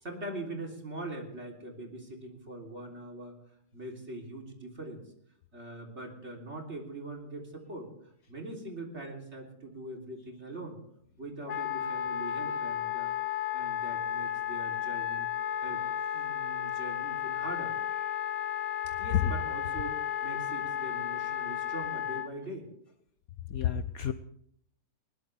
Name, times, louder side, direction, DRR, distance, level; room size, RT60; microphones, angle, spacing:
voice 1, 0.0-3.3 3.7-5.0 5.5-10.8 11.2-13.1 13.5-15.3 15.6-15.8 16.1-17.7 19.0-22.7, right 1 dB, 40° right, 0 dB, 3.5 m, -42 dB
Wind instrument woodwind instrument, 11.5-22.3, left 10 dB, 80° left, 1.6 m, -33 dB
voice 2, 23.5-24.1, left 9 dB, 60° left, 10 dB, 1.1 m, -30 dB
20.5 x 20.0 x 3.4 m, 0.71 s
omnidirectional pair, 1.9 m